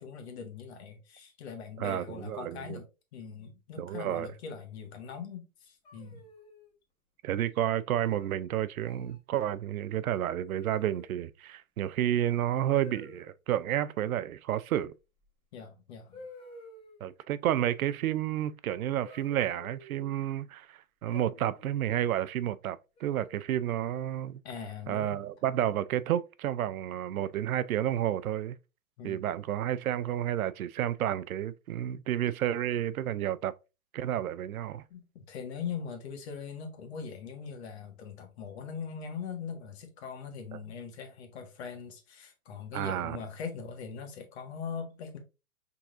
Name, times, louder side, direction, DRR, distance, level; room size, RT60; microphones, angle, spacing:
voice 1, 0.0-2.9 3.1-6.2 15.5-16.3 24.4-25.3 29.0-29.3 34.9-45.2, left 6 dB, 50° left, 1.5 m, -41 dB
voice 2, 1.8-2.8 3.8-4.3 7.2-14.9 17.0-24.4 24.9-28.6 29.0-33.5 33.9-34.8 42.7-43.2, right 11 dB, 85° right, 0.5 m, -31 dB
sound 1, 5.8-6.7 8.0-8.4 8.8-9.2 10.6-11.2 12.7-13.3 15.2-15.3 16.1-17.1 19.0-20.1 21.1-21.7 23.0-23.5, left 1 dB, 15° left, 1.1 m, -50 dB
4.8 x 4.1 x 2.4 m
hypercardioid pair, 140°, 41 cm